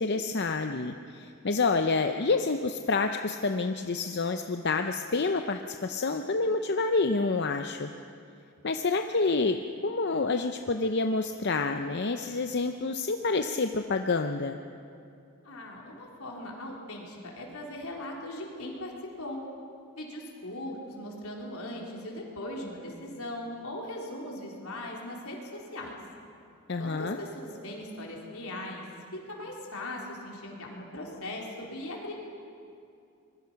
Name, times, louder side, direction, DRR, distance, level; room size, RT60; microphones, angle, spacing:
voice 1, 0.0-7.9 8.6-14.6 26.7-27.2, left 3 dB, 50° left, 6 dB, 0.7 m, -28 dB
voice 2, 15.4-18.9 19.2-19.4 20.0-26.0 26.8-28.8 29.1-32.1, left 1 dB, 80° left, -1 dB, 4.2 m, -39 dB
25.5 x 21.5 x 5.9 m, 2.5 s
head